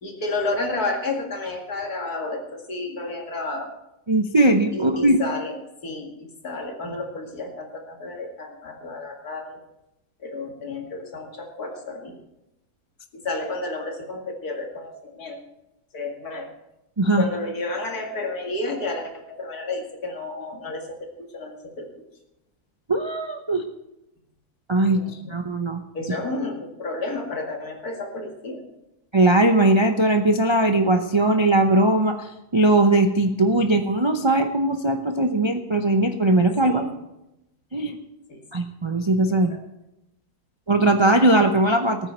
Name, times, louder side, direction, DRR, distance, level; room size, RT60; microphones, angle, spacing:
voice 1, 0.0-3.7 4.7-5.6 5.8-9.6 10.2-12.2 13.1-15.4 15.9-16.5 17.2-21.1 21.3-22.0 24.9-25.4 25.9-28.6 33.6-33.7 36.6-36.9 38.3-38.4 39.5-39.6, left 2 dB, 70° left, 2 dB, 2.6 m, -31 dB
voice 2, 4.1-5.2 17.0-17.2 22.9-23.6 24.7-25.0 25.3-25.8 29.1-36.8 37.7-38.0 38.5-39.5 40.7-42.0, right 2 dB, 35° right, 5 dB, 0.4 m, -19 dB
19.5 x 9.2 x 4.5 m, 0.92 s
omnidirectional pair, 1.7 m